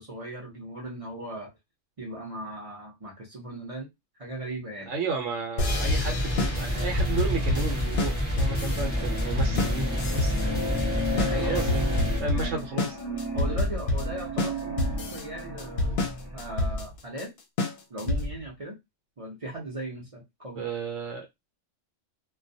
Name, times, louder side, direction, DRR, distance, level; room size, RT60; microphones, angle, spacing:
voice 1, 0.0-1.5 2.0-3.9 4.2-4.9 11.1-11.7 12.2-12.6 13.3-17.3 17.9-18.8 19.2-20.6, right 1 dB, 35° right, 0.6 m, -38 dB
voice 2, 4.9-11.8 12.2-12.9 20.6-21.3, right 4 dB, 75° right, 1.0 m, -33 dB
sound 1, 5.6-18.5, left 2 dB, 60° left, 0.7 m, -28 dB
sound 2, 5.7-12.2, equal, 10° right, 1.0 m, -28 dB
sound 3, 8.8-16.7, equal, 25° left, 0.6 m, -35 dB
2.3 x 2.1 x 2.6 m
omnidirectional pair, 1.3 m